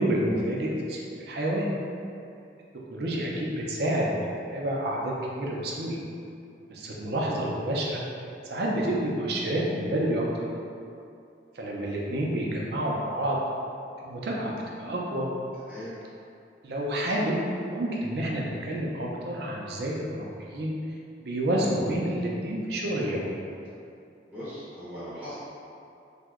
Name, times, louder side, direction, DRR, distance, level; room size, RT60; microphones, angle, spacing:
voice 1, 0.0-1.7 2.9-4.3 4.5-6.0 6.7-8.0 8.5-10.4 11.5-13.4 14.0-14.5 14.8-15.3 16.6-17.4 17.7-20.8 21.2-23.3, right 1 dB, 60° right, -3 dB, 0.4 m, -29 dB
voice 2, 15.6-15.9 24.3-25.4, equal, 10° right, -12 dB, 0.5 m, -39 dB
2.8 x 2.1 x 3.5 m, 2.6 s
head